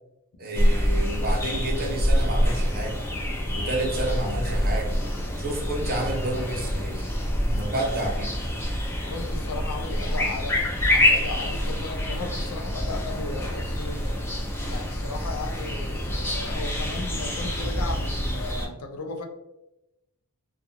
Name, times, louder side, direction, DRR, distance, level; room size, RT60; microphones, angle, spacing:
voice 1, 0.4-3.0 3.5-4.9 5.4-7.1 7.5-8.3, right 1 dB, 45° right, 0 dB, 0.7 m, -30 dB
sound 1, 0.5-18.7, equal, 10° left, 0.4 m, -26 dB
voice 2, 9.1-14.1 14.7-19.3, left 3 dB, 80° left, 5 dB, 0.4 m, -36 dB
2.5 x 2.3 x 2.8 m, 0.91 s
head